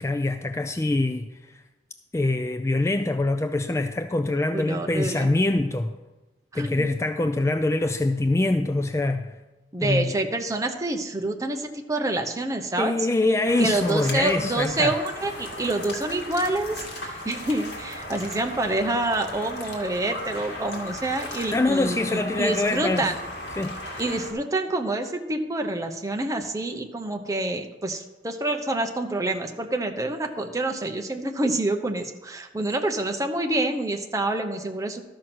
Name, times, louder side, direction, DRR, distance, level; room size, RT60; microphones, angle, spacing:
voice 1, 0.0-1.6 2.1-6.0 6.5-9.4 9.8-10.1 12.8-15.0 21.5-23.1 23.6-23.7, left 2 dB, 15° left, 0.3 m, -24 dB
voice 2, 4.5-5.3 6.5-6.9 9.7-12.9 13.6-23.2 24.0-35.0, right 2 dB, 20° right, 0.8 m, -27 dB
sound 1, 13.5-24.3, left 1 dB, 70° left, 2.2 m, -37 dB
12.5 x 6.5 x 6.1 m
head